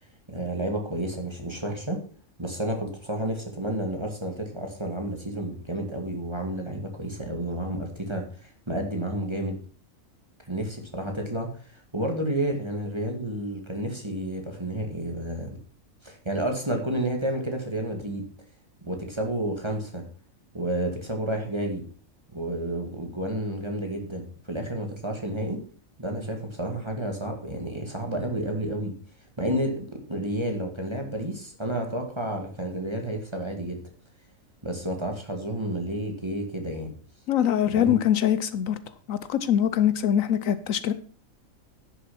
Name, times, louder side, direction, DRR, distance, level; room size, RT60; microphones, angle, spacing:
voice 1, 0.3-2.0 2.4-9.6 10.5-15.6 16.0-18.3 18.8-20.0 20.5-21.8 22.3-25.6 26.0-29.0 29.4-33.8 34.6-36.9 37.7-38.0, right 1 dB, 20° right, 2.0 m, -30 dB
voice 2, 37.3-38.8 39.1-40.9, left 10 dB, 75° left, 1.1 m, -23 dB
11.0 x 7.1 x 5.9 m
omnidirectional pair, 1.4 m